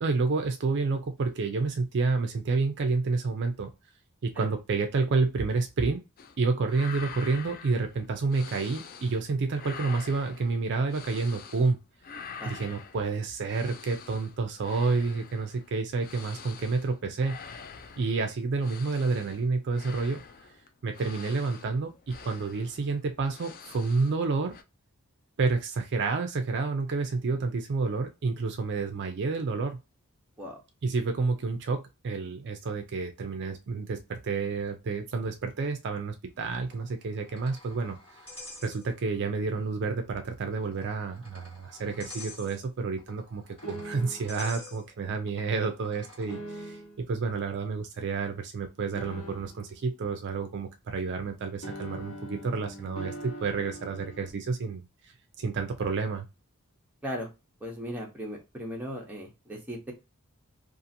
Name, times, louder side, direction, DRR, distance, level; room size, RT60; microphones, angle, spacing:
voice 1, 0.0-3.7 4.2-6.0 6.4-11.8 12.4-17.4 18.0-20.2 20.8-24.5 25.4-29.8 30.8-38.0 38.6-46.8 47.1-56.3, right 4 dB, 50° right, 5 dB, 0.4 m, -29 dB
sound 1, 6.2-6.4 6.6-9.2 9.5-11.7 12.0-24.2 24.5-24.6, left 6 dB, 40° left, 0.3 m, -46 dB
sound 2, 36.6-39.3 39.5-39.7 40.5-46.4, left 2 dB, 25° left, 1.4 m, -48 dB
sound 3, 43.6-44.4 46.3-47.1 49.0-49.8 51.6-54.3, equal, 65° left, 1.2 m, -42 dB
voice 2, 57.6-59.9, equal, 10° right, -1 dB, 0.8 m, -37 dB
2.7 x 2.5 x 2.6 m, 0.25 s
head